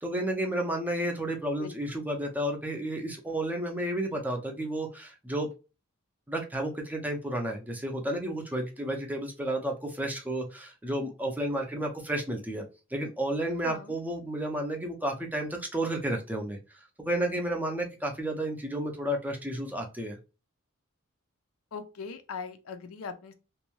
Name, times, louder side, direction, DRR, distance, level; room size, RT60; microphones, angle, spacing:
voice 1, 0.0-5.5 6.3-12.6 12.9-16.6 17.0-20.2, right 1 dB, 10° right, 0.5 m, -32 dB
voice 2, 13.6-14.0 21.7-23.3, left 5 dB, 70° left, 0.5 m, -40 dB
2.6 x 2.2 x 2.9 m
head